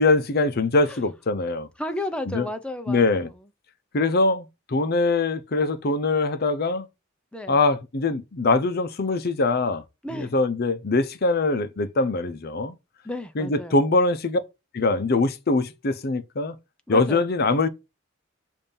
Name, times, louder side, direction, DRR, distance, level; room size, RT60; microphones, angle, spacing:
voice 1, 0.0-1.7 2.3-2.5 2.9-3.3 3.9-6.9 7.5-9.8 10.2-12.7 13.4-14.4 14.7-16.5 16.9-17.7, left 3 dB, 50° left, 0.7 m, -23 dB
voice 2, 1.8-3.3 7.3-7.6 10.0-10.3 13.0-13.8 16.9-17.3, left 1 dB, 5° left, 0.6 m, -33 dB
7.1 x 2.7 x 5.3 m
head